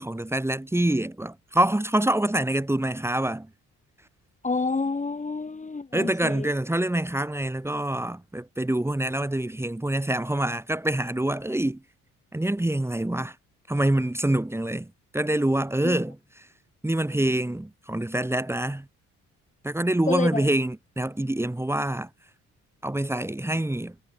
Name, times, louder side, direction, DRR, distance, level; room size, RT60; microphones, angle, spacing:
voice 1, 0.0-3.5 5.9-11.8 12.3-13.4 13.7-14.9 15.1-16.2 16.8-18.9 19.6-22.1 22.8-23.9, right 1 dB, 10° right, 2.2 m, -26 dB
voice 2, 4.4-6.5 15.8-16.0 20.1-20.5, left 4 dB, 25° left, 2.4 m, -29 dB
cardioid pair, 90°, 30 cm